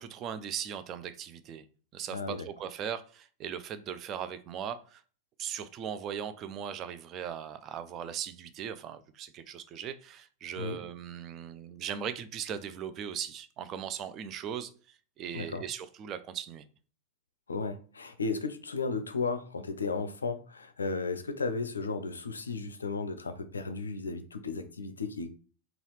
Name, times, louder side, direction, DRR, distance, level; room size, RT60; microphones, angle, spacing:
voice 1, 0.0-1.6 1.9-5.0 5.4-16.7, right 8 dB, 35° right, 0.4 m, -39 dB
voice 2, 2.1-2.5 10.6-10.8 15.3-15.6 17.5-25.3, left 4 dB, 75° left, 0.4 m, -34 dB
3.9 x 2.3 x 3.2 m
figure-of-eight pair, 90°, 0 cm